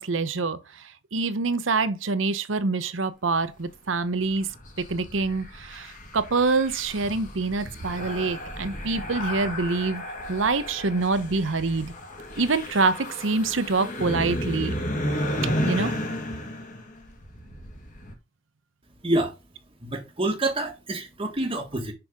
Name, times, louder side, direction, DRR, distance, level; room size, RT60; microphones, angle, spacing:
voice 1, 0.0-4.5 4.8-11.9 12.4-14.7 15.6-15.9, right 3 dB, 85° right, 0.9 m, -26 dB
sound 1, 4.3-18.1, equal, 40° left, 2.4 m, -33 dB
voice 2, 19.0-19.3 19.8-21.9, right 2 dB, 30° right, 1.5 m, -27 dB
6.8 x 5.6 x 3.6 m
head